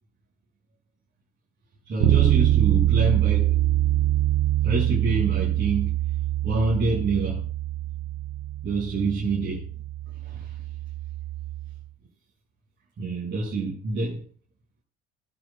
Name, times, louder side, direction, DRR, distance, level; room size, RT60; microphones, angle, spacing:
voice 1, 1.9-3.5 4.6-5.9 6.4-7.4 8.6-9.6 10.2-10.5 13.0-14.3, right 3 dB, 35° right, 6.9 m, -27 dB
Bass guitar, 2.0-11.8, right 14 dB, 75° right, 1.3 m, -24 dB
23.5 x 12.0 x 2.5 m
figure-of-eight pair, 60°, 32 cm